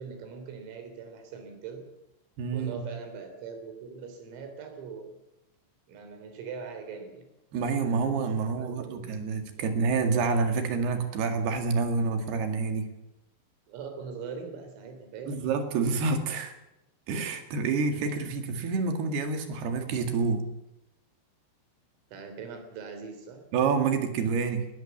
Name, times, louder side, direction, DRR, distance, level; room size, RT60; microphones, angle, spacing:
voice 1, 0.0-1.8 2.5-5.1 5.9-7.3 8.1-9.2 9.6-9.7 13.7-15.4 22.1-23.4, right 5 dB, 80° right, 7 dB, 6.2 m, -41 dB
voice 2, 2.4-2.9 7.5-12.9 15.3-16.5 17.1-20.4 23.5-24.7, right 4 dB, 60° right, 6 dB, 3.8 m, -28 dB
20.5 x 19.5 x 7.3 m, 0.91 s
omnidirectional pair, 5.9 m